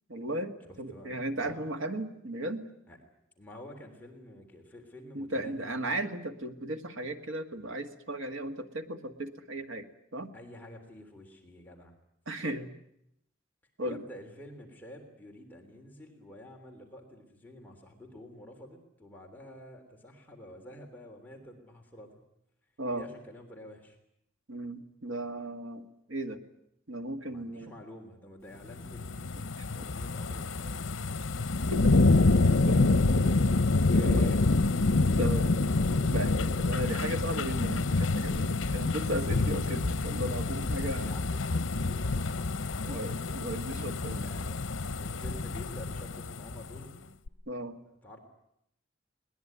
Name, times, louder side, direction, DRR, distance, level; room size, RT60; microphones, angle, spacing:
voice 1, 0.1-2.6 5.1-9.9 10.1-10.3 12.3-12.7 13.8-14.0 22.8-23.1 24.5-26.4 26.9-27.7 31.7-31.9 32.7-33.2 34.0-34.3 34.8-35.6 36.1-36.3 36.6-41.1 42.9-44.3 47.5-47.8, right 1 dB, 90° right, 7 dB, 1.9 m, -36 dB
voice 2, 0.6-1.8 2.9-3.0 3.4-5.7 10.3-11.9 13.9-22.2 22.9-24.0 27.3-29.4 29.7-30.9 33.0-33.4 33.9-34.5 35.7-36.5 41.0-43.2 44.2-44.7 45.0-47.1 47.9-48.2, left 1 dB, 10° left, 1 dB, 3.4 m, -49 dB
sound 1, 28.7-46.8 47.3-47.4, left 3 dB, 90° left, 0.9 m, -27 dB
21.5 x 20.0 x 9.6 m, 0.76 s
head